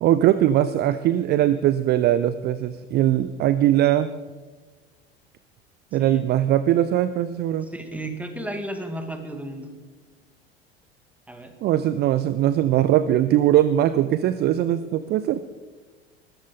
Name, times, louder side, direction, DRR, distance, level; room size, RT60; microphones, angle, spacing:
voice 1, 0.0-4.1 5.9-7.7 11.6-15.4, right 12 dB, 35° right, 14 dB, 0.5 m, -20 dB
voice 2, 7.7-9.7 11.3-11.5, right 1 dB, 5° right, 6 dB, 2.1 m, -33 dB
20.5 x 13.5 x 3.8 m, 1.4 s
figure-of-eight pair, 70°, 30 cm